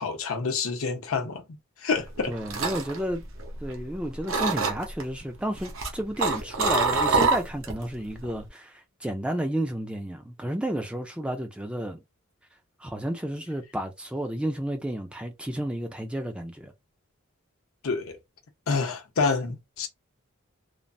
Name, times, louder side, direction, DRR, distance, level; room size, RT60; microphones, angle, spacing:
voice 1, 0.0-1.4 1.8-2.3 17.8-18.2 18.7-19.9, left 4 dB, 80° left, 0.7 m, -27 dB
sound 1, 2.1-3.9 4.3-5.0 5.6-7.8 8.1-8.5, right 3 dB, 70° right, 0.7 m, -25 dB
voice 2, 2.3-3.2 3.6-12.0 12.8-16.7, right 1 dB, 5° right, 0.3 m, -32 dB
3.1 x 2.0 x 2.5 m
head